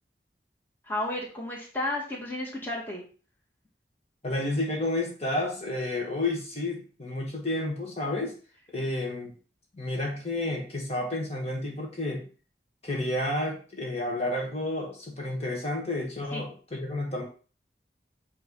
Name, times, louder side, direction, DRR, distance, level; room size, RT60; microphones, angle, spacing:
voice 1, 0.8-3.0 16.3-16.5, left 1 dB, 10° left, -3 dB, 1.9 m, -32 dB
voice 2, 4.2-8.3 8.7-9.3 9.7-12.2 12.8-17.3, left 1 dB, 35° left, -1 dB, 1.8 m, -31 dB
9.2 x 3.4 x 5.5 m, 0.38 s
head